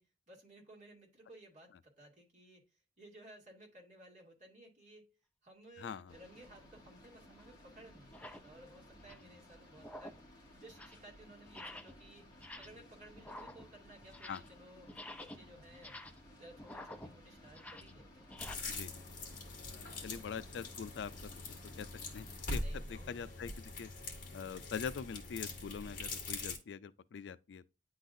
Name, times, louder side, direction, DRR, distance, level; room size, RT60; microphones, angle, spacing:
voice 1, 0.0-5.1 5.4-10.3 10.6-12.3 12.6-15.9 16.4-18.2 22.4-23.2, right 1 dB, 40° right, 2.5 m, -57 dB
voice 2, 5.8-6.1 14.3-14.4 18.7-18.9 19.7-23.9 24.3-27.7, left 6 dB, 70° left, 0.4 m, -44 dB
sound 1, 6.1-22.5, left 1 dB, 25° left, 2.0 m, -59 dB
sound 2, 6.5-6.7 7.4-7.5 8.0-8.5 8.9-9.3 9.7-10.3 10.6-11.1 11.5-12.0 12.3-12.9 13.2-14.6 14.8-18.5, left 1 dB, 10° left, 0.5 m, -50 dB
sound 3, 18.4-26.6, left 3 dB, 50° left, 2.0 m, -43 dB
9.9 x 3.9 x 2.6 m
head